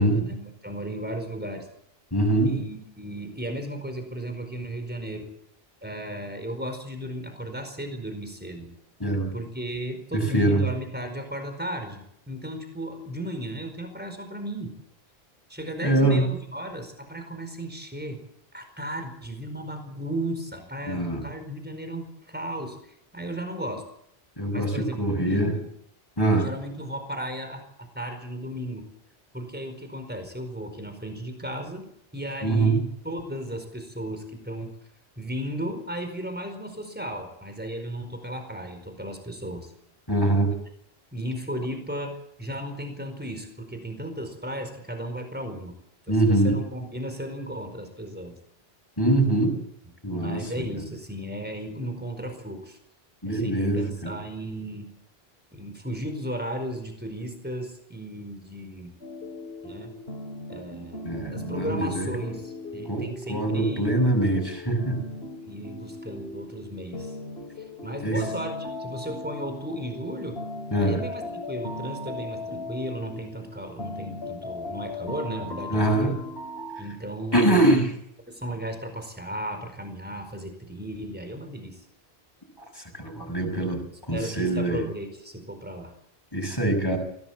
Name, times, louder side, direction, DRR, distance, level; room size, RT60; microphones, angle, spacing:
voice 1, 0.0-1.7 2.4-5.3 5.8-8.8 9.3-14.7 15.5-18.2 18.5-22.8 23.1-23.8 24.5-25.7 26.4-28.9 29.3-31.8 32.1-34.7 35.2-39.7 41.1-45.7 46.1-48.4 50.1-52.8 53.2-54.9 55.5-58.9 59.6-60.0 60.5-63.9 65.5-67.2 67.8-70.4 70.8-76.2 76.8-77.8 78.3-81.8 83.1-83.3 84.1-85.9, right 1 dB, 10° right, 6 dB, 4.8 m, -35 dB
voice 2, 2.1-2.6 9.0-9.3 10.1-10.6 15.8-16.2 20.8-21.3 24.4-25.5 26.2-26.5 32.4-32.8 40.1-40.5 46.1-46.6 49.0-49.5 50.0-50.4 50.7-50.8 53.2-54.1 61.0-62.1 62.9-65.0 68.0-68.2 70.7-71.0 75.7-76.1 77.3-77.9 82.7-83.8 84.1-84.8 86.3-87.0, right 1 dB, 20° left, 2 dB, 6.5 m, -23 dB
sound 1, 59.0-76.8, left 2 dB, 85° left, 3.2 m, -38 dB
23.5 x 17.5 x 7.4 m, 0.72 s
omnidirectional pair, 1.0 m